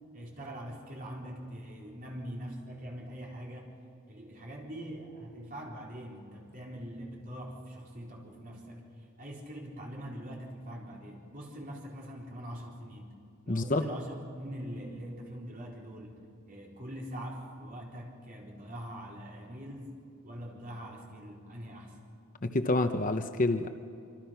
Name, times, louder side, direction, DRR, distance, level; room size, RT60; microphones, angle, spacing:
voice 1, 0.1-3.8 4.1-13.1 13.4-16.2 16.5-22.0, equal, 40° right, -2 dB, 4.1 m, -43 dB
voice 2, 13.5-13.8 22.4-23.7, left 2 dB, 35° left, 8 dB, 0.8 m, -28 dB
25.5 x 25.0 x 5.8 m, 2.6 s
head